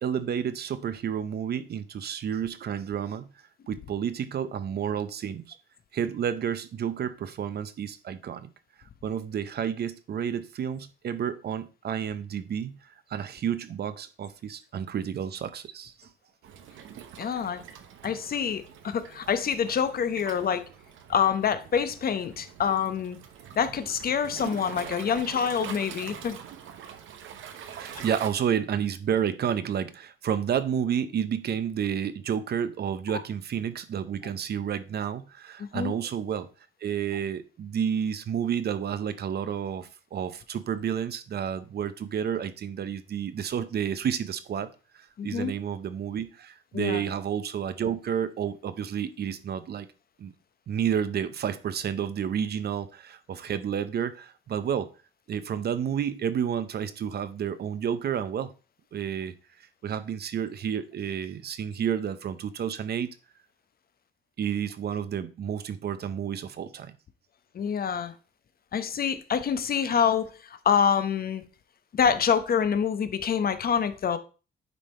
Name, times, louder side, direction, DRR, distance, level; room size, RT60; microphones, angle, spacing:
voice 1, 0.0-3.3 3.7-5.6 5.9-8.5 9.0-16.1 27.7-36.5 36.8-49.9 50.2-50.3 50.7-54.9 55.3-58.5 58.9-59.3 59.8-63.1 64.4-66.9, right 8 dB, 55° right, 0.7 m, -30 dB
Waves surf, 16.4-28.3, right 8 dB, 80° right, 1.0 m, -44 dB
voice 2, 17.2-17.6 18.0-20.6 21.1-23.2 23.6-26.4 28.0-28.1 35.6-35.9 45.2-45.5 46.7-47.0 67.5-68.1 68.7-71.4 71.9-74.2, left 7 dB, 50° left, 0.8 m, -26 dB
9.3 x 3.4 x 4.3 m
cardioid pair, 90°, 20 cm